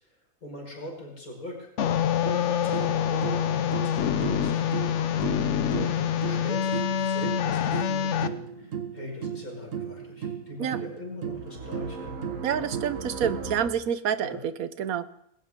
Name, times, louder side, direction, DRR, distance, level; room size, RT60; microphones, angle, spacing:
voice 1, 0.4-1.7 2.2-5.2 5.7-12.2 12.5-12.7 14.2-14.4, left 1 dB, 85° left, -1 dB, 5.7 m, -42 dB
sound 1, 1.8-8.3, left 9 dB, 60° left, 1.0 m, -26 dB
sound 2, 2.2-13.7, right 7 dB, 65° right, 1.7 m, -36 dB
voice 2, 12.4-15.1, right 8 dB, 80° right, 14 dB, 1.3 m, -28 dB
20.5 x 17.0 x 3.7 m, 0.77 s
omnidirectional pair, 1.5 m